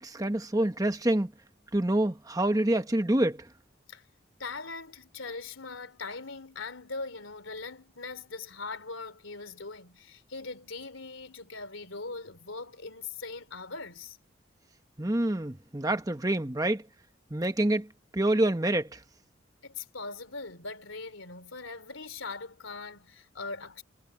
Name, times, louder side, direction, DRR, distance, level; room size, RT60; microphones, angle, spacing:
voice 1, 0.0-1.3 1.7-3.5 15.0-16.8 17.3-19.0, right 1 dB, 20° right, 1.0 m, -27 dB
voice 2, 4.4-14.2 19.6-23.8, left 3 dB, 85° left, 3.4 m, -41 dB
head